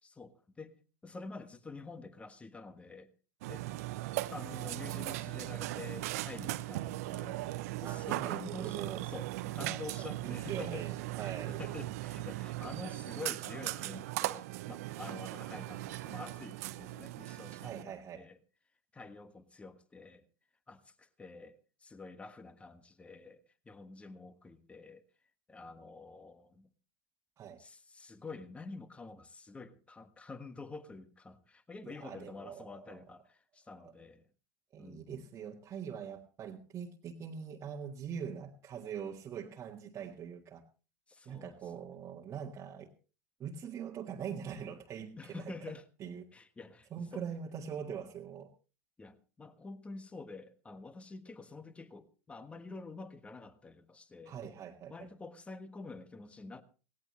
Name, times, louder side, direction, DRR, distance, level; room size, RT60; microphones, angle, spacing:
voice 1, 0.0-0.8 1.0-3.1 3.5-3.7 4.3-7.4 7.8-8.8 9.1-10.9 11.2-18.4 18.9-20.2 20.7-23.4 23.6-25.0 25.5-26.7 27.6-34.3 34.8-35.3 41.1-42.0 45.2-45.8 46.3-47.2 49.0-54.3 54.9-56.6, left 3 dB, 15° left, 1.4 m, -48 dB
Burping eructation, 3.4-17.8, right 17 dB, 65° right, 0.8 m, -38 dB
voice 2, 7.8-9.0 9.4-11.6 17.6-18.2 27.4-27.6 31.8-33.0 34.7-40.6 41.3-42.9 43.4-45.7 46.0-46.2 46.9-48.5 54.3-55.1, right 7 dB, 30° right, 1.7 m, -43 dB
17.5 x 17.5 x 3.1 m
hypercardioid pair, 95°, 9 cm